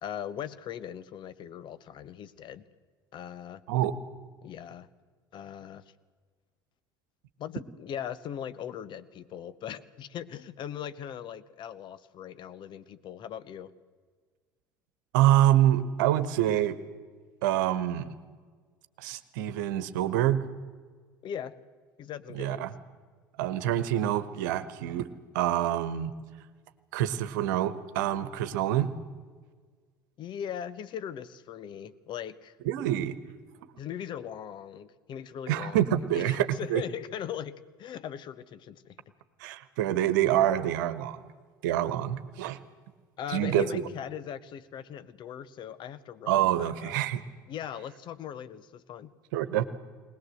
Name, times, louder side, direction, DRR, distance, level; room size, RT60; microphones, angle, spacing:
voice 1, 0.0-2.6 3.1-3.6 4.4-4.9 5.3-5.8 7.4-13.7 21.2-21.5 22.0-22.7 30.2-32.6 33.8-39.0 43.2-47.0 47.5-49.1, left 9 dB, 45° left, 15 dB, 1.1 m, -39 dB
voice 2, 3.7-4.0 15.1-16.8 17.4-18.1 19.0-20.4 22.3-22.7 23.4-25.1 25.3-26.1 26.9-28.9 32.6-33.2 35.5-36.8 39.4-41.2 41.6-42.6 43.3-43.8 46.3-47.2 49.3-49.6, right 12 dB, 70° right, 13 dB, 1.2 m, -26 dB
20.5 x 20.0 x 7.8 m, 1.5 s
hypercardioid pair, 70°, 11 cm